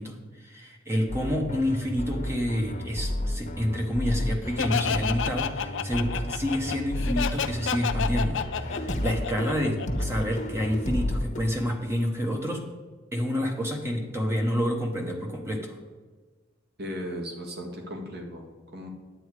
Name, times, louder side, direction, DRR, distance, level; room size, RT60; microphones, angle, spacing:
voice 1, 0.0-12.7 13.1-15.8, equal, 15° right, 1 dB, 1.1 m, -28 dB
sound 1, 1.1-11.4, left 1 dB, 40° left, 1.2 m, -31 dB
Laughter, 4.6-10.2, left 7 dB, 70° left, 0.6 m, -30 dB
voice 2, 16.8-18.9, equal, 55° right, 2 dB, 2.0 m, -37 dB
10.0 x 8.5 x 4.9 m, 1.4 s
head